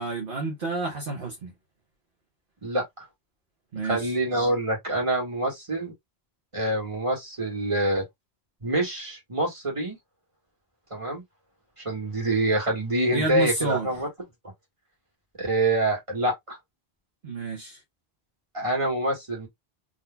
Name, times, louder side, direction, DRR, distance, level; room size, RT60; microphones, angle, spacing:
voice 1, 0.0-1.5 3.7-4.1 13.1-13.9 17.2-17.8, right 3 dB, 55° right, 1.2 m, -30 dB
voice 2, 3.8-5.9 6.5-8.0 8.6-10.0 10.9-11.2 11.8-14.1 15.4-16.6 18.5-19.5, right 1 dB, 30° right, 1.6 m, -26 dB
3.8 x 2.9 x 2.2 m
omnidirectional pair, 1.1 m